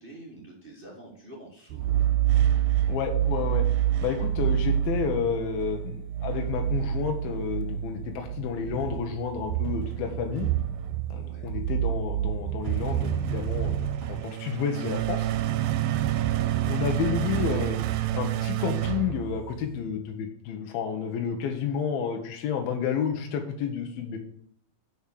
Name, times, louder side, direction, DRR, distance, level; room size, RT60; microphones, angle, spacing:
voice 1, 0.0-2.0 11.1-11.5, right 1 dB, 50° right, -2 dB, 0.6 m, -47 dB
sound 1, 1.7-19.9, right 11 dB, 80° right, 2.3 m, -28 dB
voice 2, 2.9-3.6 4.0-10.5 11.1-13.8 14.1-15.3 16.7-17.8 18.1-24.2, left 7 dB, 80° left, 3 dB, 2.8 m, -30 dB
7.2 x 6.2 x 7.4 m, 0.64 s
omnidirectional pair, 4.3 m